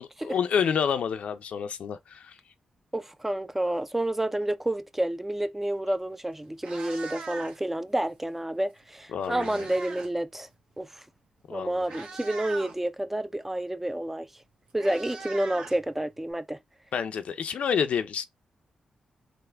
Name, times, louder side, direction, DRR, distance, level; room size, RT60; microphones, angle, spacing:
voice 1, 0.0-2.3 9.1-9.6 11.5-11.8 16.9-18.3, left 7 dB, 75° left, 0.4 m, -29 dB
voice 2, 2.9-10.5 10.8-11.0 11.5-14.3 14.7-16.6, right 1 dB, 10° right, 0.3 m, -29 dB
Meow, 6.0-6.1 6.5-7.8 8.8-10.2 10.4-10.7 11.4-11.5 11.8-12.8 14.1-14.2 14.4-16.3, right 4 dB, 70° right, 0.9 m, -41 dB
3.4 x 2.1 x 3.3 m
cardioid pair, 85°, 2 cm